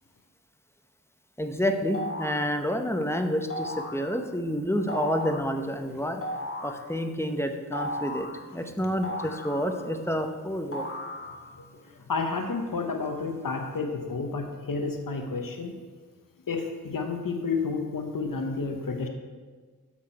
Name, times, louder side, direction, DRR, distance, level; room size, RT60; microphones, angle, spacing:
voice 1, 1.4-6.2 6.6-8.3 8.5-9.1 9.4-10.9, equal, 10° left, 5 dB, 0.8 m, -29 dB
sound 1, 1.9-2.5 3.5-4.0 4.9-5.5 6.2-6.8 7.7-8.4 9.0-10.0 10.7-11.5, left 1 dB, 40° left, 1.2 m, -35 dB
voice 2, 11.5-15.8 16.5-19.1, left 4 dB, 75° left, 4 dB, 0.9 m, -31 dB
8.3 x 6.0 x 4.5 m, 1.4 s
wide cardioid pair, 40°, 34 cm